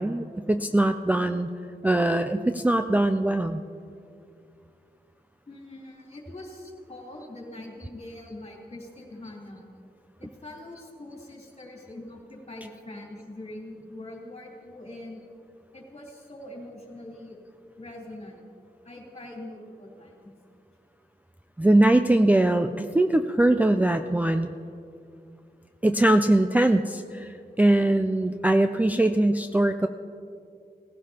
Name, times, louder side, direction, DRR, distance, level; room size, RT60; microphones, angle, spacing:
voice 1, 0.0-1.5 1.8-3.6 21.6-24.5 25.8-29.9, right 1 dB, 10° right, 6 dB, 0.3 m, -22 dB
voice 2, 5.5-9.7 10.2-15.2 15.7-17.4 17.8-18.4 18.8-20.1, left 1 dB, 40° left, -3 dB, 3.3 m, -43 dB
18.0 x 16.0 x 2.9 m, 2.5 s
wide cardioid pair, 120°, 17 cm